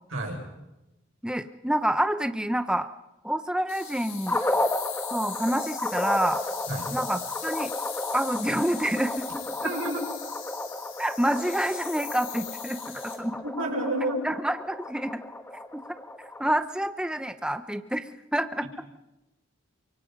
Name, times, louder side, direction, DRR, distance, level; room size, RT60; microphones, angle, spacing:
voice 1, 0.1-0.4 6.7-6.9 9.6-10.0 13.4-14.2, right 1 dB, 90° right, 1 dB, 6.4 m, -29 dB
voice 2, 1.2-2.9 3.2-4.4 5.1-6.4 6.9-7.7 8.1-9.3 9.6-9.7 11.0-13.4 14.2-15.2 15.7-15.8 16.2-18.7, right 1 dB, 5° right, 9 dB, 0.8 m, -28 dB
sound 1, 3.7-13.2, left 9 dB, 75° left, 6.7 m, -40 dB
sound 2, 4.3-16.5, left 1 dB, 10° left, 1.5 m, -33 dB
29.0 x 24.5 x 5.4 m, 0.99 s
head